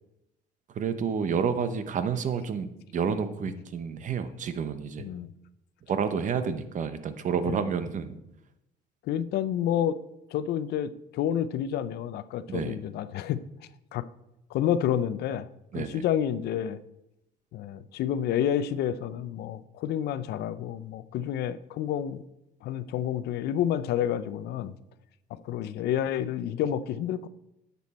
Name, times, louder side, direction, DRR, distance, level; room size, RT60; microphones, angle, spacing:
voice 1, 0.7-5.1 5.9-8.2 12.5-12.8 15.7-16.0, right 6 dB, 50° right, 11 dB, 0.9 m, -30 dB
voice 2, 5.0-5.3 6.5-6.6 7.5-7.6 9.0-10.0 10.3-13.4 13.9-14.0 14.5-15.4 15.7-16.8 17.5-22.2 22.6-24.7 25.4-27.3, left 10 dB, 75° left, 14 dB, 0.6 m, -29 dB
10.5 x 7.0 x 4.2 m, 0.88 s
cardioid pair, 110°, 17 cm